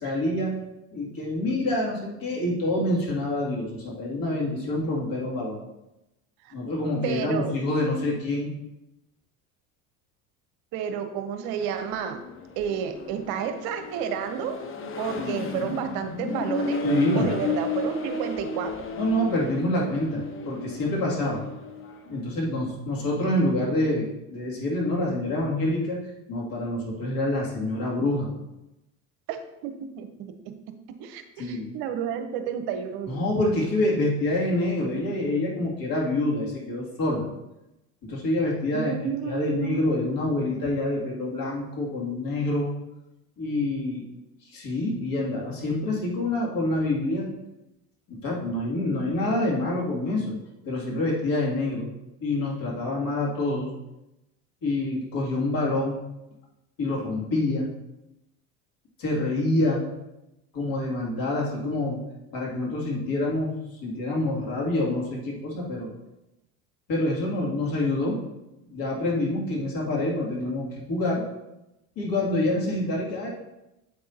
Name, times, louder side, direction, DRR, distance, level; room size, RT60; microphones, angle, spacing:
voice 1, 0.0-0.6 0.9-5.6 6.5-8.5 16.8-17.3 19.0-21.4 22.1-28.3 31.4-31.7 33.1-37.2 38.0-42.7 43.4-44.1 44.4-47.3 48.1-50.4 50.6-51.9 52.2-53.7 54.6-56.0 56.8-57.7 59.0-59.8 60.5-62.0 62.3-63.5 63.8-65.9 66.9-68.2 68.7-71.2 72.0-73.3, left 1 dB, 50° left, -3 dB, 2.4 m, -26 dB
voice 2, 7.0-7.5 10.7-12.2 12.6-14.6 15.0-16.8 17.1-18.7 29.3-30.5 31.0-33.2 38.7-40.1, right 8 dB, 55° right, 7 dB, 0.8 m, -31 dB
Accelerating revving vroom, 11.6-22.1, left 2 dB, 30° left, 0.9 m, -32 dB
7.8 x 5.6 x 2.8 m, 0.94 s
hypercardioid pair, 75°, 44 cm